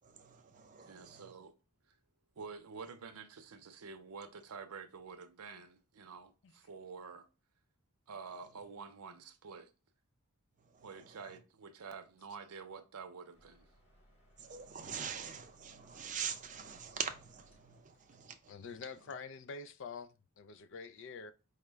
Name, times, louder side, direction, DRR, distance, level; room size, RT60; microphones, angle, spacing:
voice 1, 0.0-1.3 2.4-2.5 2.9-3.0 8.3-8.6 10.5-11.4 14.4-19.1, right 7 dB, 35° right, 0.5 m, -45 dB
voice 2, 0.9-1.5 2.4-7.3 8.1-9.7 10.8-13.7, right 5 dB, 90° right, 0.6 m, -49 dB
sound 1, 13.3-18.4, equal, 30° left, 1.1 m, -67 dB
voice 3, 18.5-21.3, left 5 dB, 60° left, 0.4 m, -46 dB
4.9 x 2.2 x 3.2 m
head